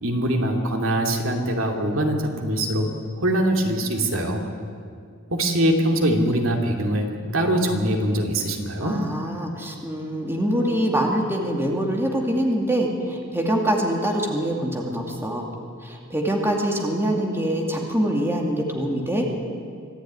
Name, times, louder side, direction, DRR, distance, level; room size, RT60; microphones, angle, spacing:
voice 1, 0.0-2.9 3.2-4.4 5.3-7.1 7.3-9.0, right 1 dB, 65° right, 2 dB, 2.8 m, -22 dB
voice 2, 8.8-15.5 15.8-19.3, right 1 dB, 10° right, 0 dB, 2.5 m, -24 dB
25.5 x 15.0 x 9.7 m, 2.3 s
head